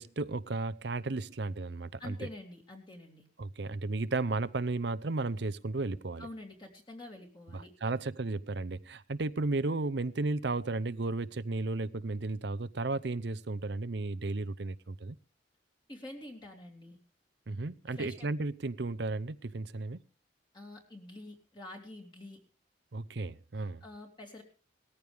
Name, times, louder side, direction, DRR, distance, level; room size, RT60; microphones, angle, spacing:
voice 1, 0.0-2.3 3.4-6.3 7.5-15.2 17.5-20.0 22.9-23.8, right 3 dB, 60° right, 0.7 m, -34 dB
voice 2, 2.0-3.3 6.2-7.7 15.9-17.0 17.9-18.3 20.5-22.4 23.5-24.4, left 1 dB, 25° left, 2.8 m, -47 dB
19.0 x 14.0 x 3.5 m
head